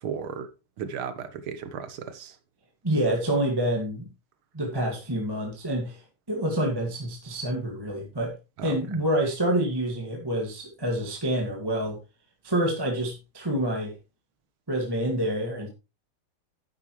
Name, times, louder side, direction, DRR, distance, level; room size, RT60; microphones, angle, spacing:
voice 1, 0.0-0.5 0.8-2.4 8.6-8.8, right 7 dB, 75° right, 2.0 m, -35 dB
voice 2, 2.8-4.1 4.5-6.0 6.3-8.3 8.6-12.0 12.4-13.9 14.7-15.7, right 1 dB, 10° right, 1.9 m, -27 dB
11.0 x 8.5 x 3.2 m
omnidirectional pair, 2.3 m